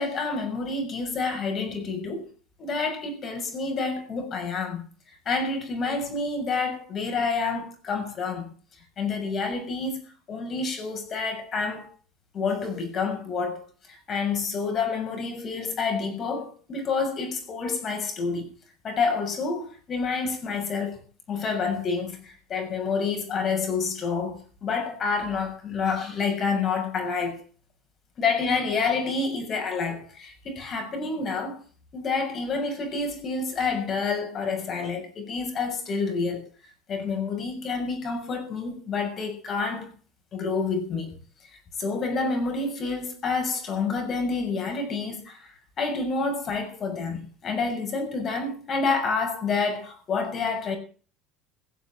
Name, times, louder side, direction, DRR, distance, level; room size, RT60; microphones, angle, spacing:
voice 1, 0.0-2.3 2.6-4.8 5.2-8.5 9.0-11.9 12.3-18.5 18.8-21.0 21.3-27.4 28.2-31.6 31.9-36.5 36.9-39.9 40.3-41.1 41.8-50.8, left 4 dB, 40° left, 6.6 m, -28 dB
17.0 x 7.4 x 8.9 m
supercardioid pair, 90°, 0 cm